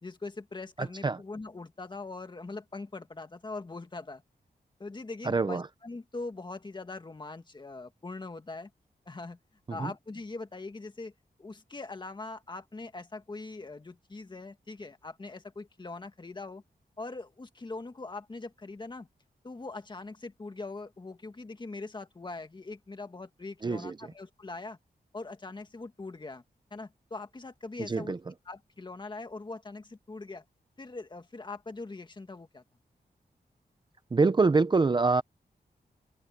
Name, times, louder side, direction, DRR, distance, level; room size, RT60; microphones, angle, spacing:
voice 1, 0.0-4.2 4.8-8.7 9.1-9.4 9.7-11.1 11.4-16.6 17.0-19.1 19.4-24.8 25.1-26.4 26.7-28.2 28.5-30.4 30.8-32.6, left 3 dB, 30° left, 1.8 m, -42 dB
voice 2, 0.8-1.2 5.2-5.6 9.7-9.9 23.6-23.9 27.9-28.2 34.1-35.2, right 4 dB, 30° right, 0.6 m, -25 dB
wide cardioid pair, 175°, 17 cm